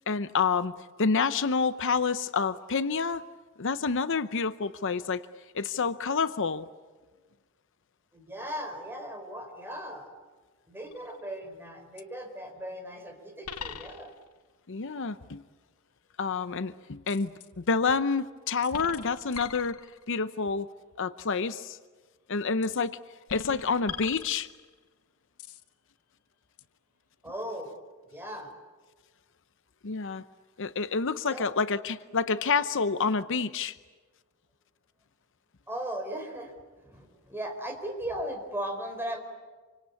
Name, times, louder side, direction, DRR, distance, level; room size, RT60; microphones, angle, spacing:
voice 1, 0.1-3.2 3.6-5.2 5.5-6.7 14.7-15.4 16.2-19.8 20.1-20.7 21.0-21.8 22.3-23.0 23.3-24.5 29.8-30.2 30.6-33.8, left 5 dB, 60° left, 12 dB, 0.7 m, -28 dB
voice 2, 8.1-10.1 10.7-14.1 27.2-27.7 28.1-28.5 31.3-31.5 35.7-36.5 36.8-39.2, right 1 dB, 10° right, 4 dB, 4.3 m, -37 dB
sound 1, 10.9-11.3 12.0-12.1 13.4-14.4 17.1-17.5 18.6-20.2 22.6-22.9 23.3-24.8 25.4-25.7 26.6-26.7, left 6 dB, 85° left, 1.1 m, -42 dB
27.0 x 25.5 x 8.4 m, 1.4 s
head